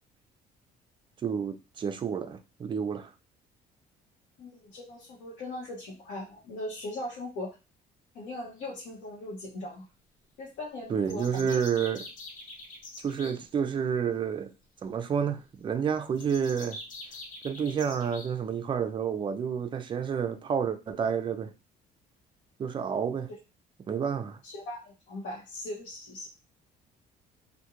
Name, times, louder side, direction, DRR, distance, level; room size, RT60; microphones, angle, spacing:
voice 1, 1.2-3.1 10.9-12.1 13.0-14.5 14.8-16.8 17.4-21.5 22.6-23.3 23.9-24.4, right 7 dB, 30° right, 0.3 m, -29 dB
voice 2, 4.4-7.5 8.1-9.8 10.4-11.6 24.4-26.3, left 1 dB, 85° left, 0.8 m, -39 dB
sound 1, 11.1-13.3 16.1-18.3, left 2 dB, 50° left, 0.8 m, -44 dB
2.4 x 2.1 x 2.8 m
cardioid pair, 110°, 17 cm